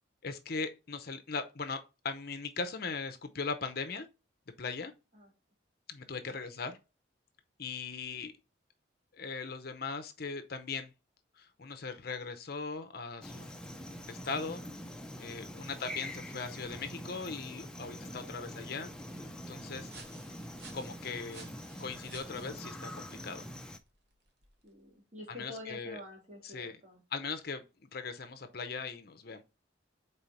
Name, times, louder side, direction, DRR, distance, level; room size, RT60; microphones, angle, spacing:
voice 1, 0.2-4.1 4.6-4.9 5.9-6.8 7.6-8.3 9.1-10.9 11.4-13.5 14.1-14.6 15.2-18.9 19.5-19.9 20.7-21.5 21.8-23.5 25.3-26.0 26.4-26.8 27.1-29.4, left 4 dB, 50° left, 0.7 m, -39 dB
sound 1, 13.2-23.8, equal, 5° left, 0.5 m, -44 dB
sound 2, 19.8-24.9, right 4 dB, 60° right, 1.2 m, -57 dB
voice 2, 24.6-27.0, left 1 dB, 40° right, 2.0 m, -48 dB
4.4 x 4.1 x 5.2 m
head